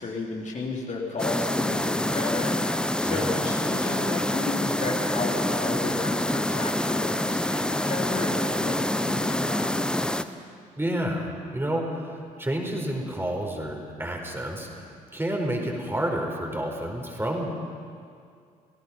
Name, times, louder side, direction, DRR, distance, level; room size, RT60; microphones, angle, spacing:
voice 1, 0.0-2.6 3.0-9.8, left 3 dB, 40° left, -2 dB, 3.4 m, -33 dB
sound 1, 1.2-10.2, left 1 dB, 5° left, 0.9 m, -26 dB
voice 2, 3.0-3.3 10.8-17.5, right 1 dB, 10° right, 1 dB, 4.7 m, -30 dB
27.5 x 17.5 x 5.5 m, 2.3 s
figure-of-eight pair, 50°, 19 cm